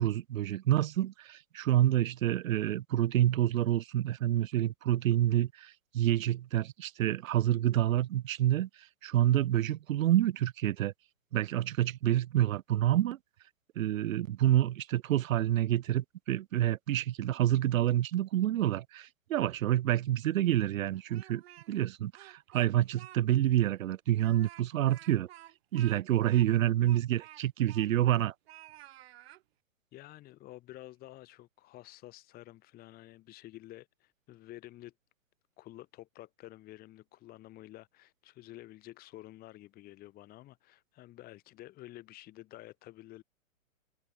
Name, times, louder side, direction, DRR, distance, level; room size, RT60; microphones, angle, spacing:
voice 1, 0.0-8.7 9.0-10.9 11.3-13.2 13.8-21.4 21.7-25.3 25.7-28.3, right 13 dB, 80° right, 0.6 m, -28 dB
Speech, 20.9-21.8 22.1-23.2 23.5-23.6 24.1-28.2 28.5-29.4, right 15 dB, 50° right, 2.5 m, -53 dB
voice 2, 29.9-34.9 35.6-43.2, left 16 dB, 20° left, 2.2 m, -50 dB
open air
hypercardioid pair, 140°, 40 cm